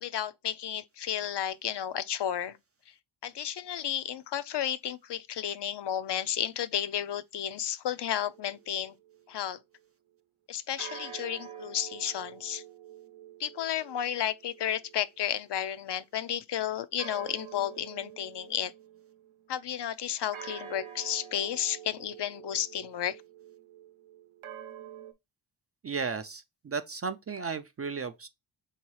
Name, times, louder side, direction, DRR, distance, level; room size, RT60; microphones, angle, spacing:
voice 1, 0.0-2.6 3.2-8.9 9.3-9.6 10.5-12.6 13.4-18.7 19.5-23.2, left 10 dB, 60° left, 0.5 m, -32 dB
sound 1, 8.0-9.5 10.8-15.7 17.0-19.4 20.3-25.1, right 9 dB, 80° right, 0.8 m, -47 dB
voice 2, 25.8-28.3, right 5 dB, 35° right, 0.4 m, -34 dB
3.8 x 2.8 x 4.6 m
wide cardioid pair, 105°, 48 cm